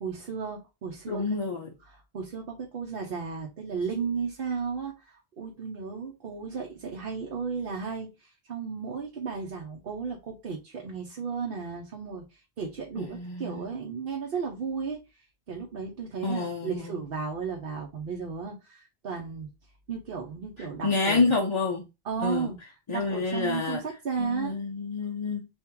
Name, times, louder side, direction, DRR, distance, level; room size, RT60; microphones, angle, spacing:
voice 1, 0.0-1.3 1.8-19.5 19.9-21.3 22.0-22.6 22.9-24.6, right 5 dB, 65° right, 0.9 m, -34 dB
voice 2, 1.1-1.7 13.0-13.7 16.2-17.0 20.8-21.9 22.2-22.5 22.9-23.8 24.2-25.5, left 3 dB, 35° left, 0.5 m, -28 dB
3.6 x 2.5 x 4.5 m
omnidirectional pair, 1.0 m